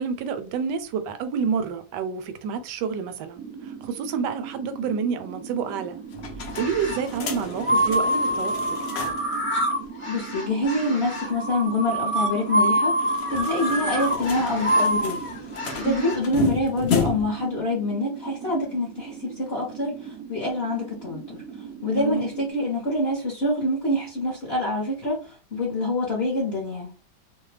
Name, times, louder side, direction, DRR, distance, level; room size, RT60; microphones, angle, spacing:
voice 1, 0.0-6.0 6.6-8.5 15.8-16.1 22.0-22.3, right 6 dB, 85° right, 1.2 m, -28 dB
sound 1, 3.3-22.5, right 7 dB, 70° right, 0.8 m, -40 dB
sound 2, 6.1-9.4 9.7-9.8 10.0-10.1 12.9-17.4, left 6 dB, 85° left, 0.5 m, -32 dB
sound 3, 6.5-7.1 7.6-16.2, equal, 10° left, 0.6 m, -26 dB
voice 2, 10.1-15.2 15.8-21.4 21.8-26.9, left 1 dB, 50° left, 0.8 m, -26 dB
2.8 x 2.1 x 3.2 m
omnidirectional pair, 1.8 m